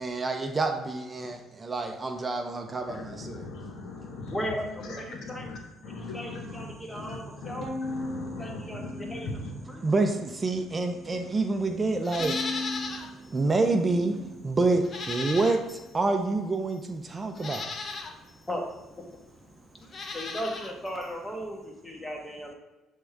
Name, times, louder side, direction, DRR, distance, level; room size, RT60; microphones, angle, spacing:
voice 1, 0.0-3.5 9.8-12.5 13.1-17.7, right 3 dB, 25° right, 5 dB, 0.6 m, -28 dB
voice 2, 2.9-9.5, left 2 dB, 65° left, 2 dB, 1.2 m, -40 dB
voice 3, 4.3-5.5 5.8-7.7 8.4-9.3 9.7-9.9 18.5-18.6 20.1-22.5, equal, 15° left, 1 dB, 1.3 m, -36 dB
Bowed string instrument, 7.6-10.0 10.4-11.2 12.2-14.7, left 2 dB, 50° right, 0.9 m, -39 dB
Livestock farm animals working animals, 12.0-13.1 13.5-13.6 14.8-15.9 16.7-16.8 17.3-18.1 19.8-20.7 21.0-21.1, left 4 dB, 40° left, 0.7 m, -36 dB
7.6 x 3.6 x 3.4 m, 1.1 s
supercardioid pair, 85°, 0 cm